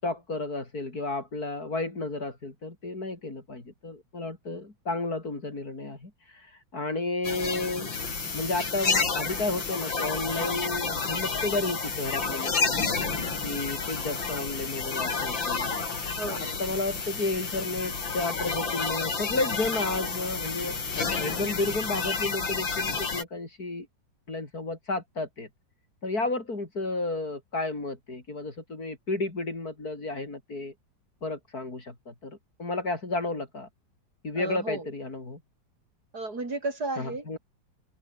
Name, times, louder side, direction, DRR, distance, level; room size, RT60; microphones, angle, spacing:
voice 1, 0.0-6.5 6.7-7.9 8.3-12.8 13.4-15.7 16.2-20.7 21.1-23.9 24.3-25.5 26.0-30.7 31.2-33.7 34.2-35.4 37.0-37.4, left 2 dB, 50° left, 5.1 m, -32 dB
sound 1, 7.2-23.2, left 4 dB, 75° left, 4.2 m, -30 dB
voice 2, 16.2-16.6 34.3-34.9 36.1-37.4, right 2 dB, 55° right, 4.8 m, -34 dB
omnidirectional pair, 2.1 m